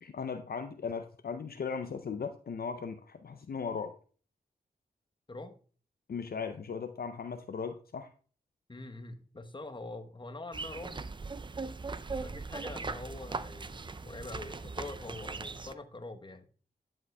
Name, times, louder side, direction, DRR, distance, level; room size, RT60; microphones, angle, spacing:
voice 1, 0.0-3.9 6.1-8.1, left 5 dB, 65° left, 8 dB, 0.5 m, -37 dB
voice 2, 8.7-11.0 12.1-16.5, left 2 dB, 30° left, 7 dB, 1.0 m, -44 dB
sound 1, 10.5-15.7, right 4 dB, 30° right, 0.4 m, -39 dB
11.5 x 5.1 x 2.2 m, 0.41 s
cardioid pair, 45°, 17 cm